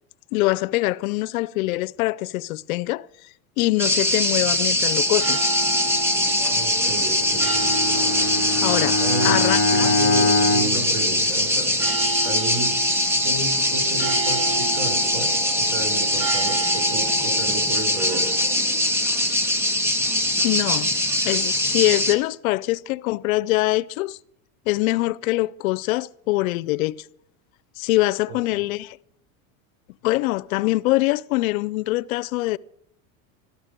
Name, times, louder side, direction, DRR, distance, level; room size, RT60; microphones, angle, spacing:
voice 1, 0.3-3.1 3.6-5.5 8.6-9.9 20.4-20.9 21.2-24.2 24.7-27.1 27.8-29.0 30.0-32.6, left 19 dB, 85° left, 0.6 m, -23 dB
sound 1, 3.8-22.2, left 1 dB, 5° right, 1.2 m, -22 dB
sound 2, 4.9-18.6, right 4 dB, 65° right, 2.3 m, -33 dB
voice 2, 6.5-7.5 9.0-9.4 9.7-11.7 12.2-12.8 13.2-18.4 28.3-28.6, right 3 dB, 30° right, 5.0 m, -32 dB
Bowed string instrument, 7.2-11.9, left 2 dB, 30° left, 1.3 m, -24 dB
13.5 x 12.5 x 6.6 m
supercardioid pair, 125°, 41 cm